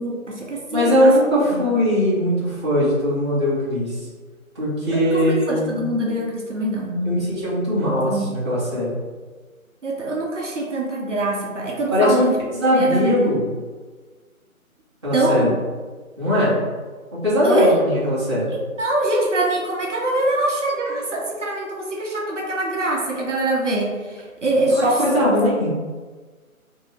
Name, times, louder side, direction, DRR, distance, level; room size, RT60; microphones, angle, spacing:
voice 1, 0.0-1.1 1.6-1.7 4.9-7.2 8.1-8.2 9.8-12.3 12.7-13.1 15.1-15.5 17.4-17.8 18.5-24.9, right 2 dB, 55° right, -1 dB, 0.6 m, -23 dB
voice 2, 0.7-4.0 4.5-5.8 7.0-8.9 11.9-12.3 12.6-13.4 15.0-15.6 16.2-16.6 17.1-18.5 24.6-25.8, equal, 20° right, -12 dB, 0.7 m, -20 dB
2.9 x 2.6 x 3.0 m, 1.4 s
figure-of-eight pair, 165°, 43 cm